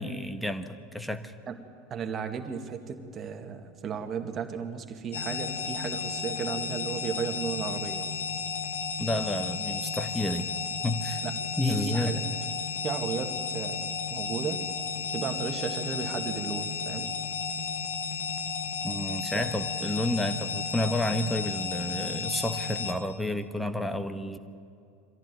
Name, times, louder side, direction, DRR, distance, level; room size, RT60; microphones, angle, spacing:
voice 1, 0.0-1.3 9.0-10.5 10.8-11.2 11.6-12.2 18.8-24.4, left 1 dB, ahead, 10 dB, 1.3 m, -30 dB
voice 2, 1.9-8.1 11.2-11.3 11.6-12.2 12.8-14.6 15.1-17.1 19.3-19.4, right 6 dB, 30° right, 6 dB, 2.0 m, -34 dB
sound 1, 5.1-22.9, left 6 dB, 70° left, 1.5 m, -33 dB
24.0 x 15.5 x 9.2 m, 2.5 s
figure-of-eight pair, 80°, 0 cm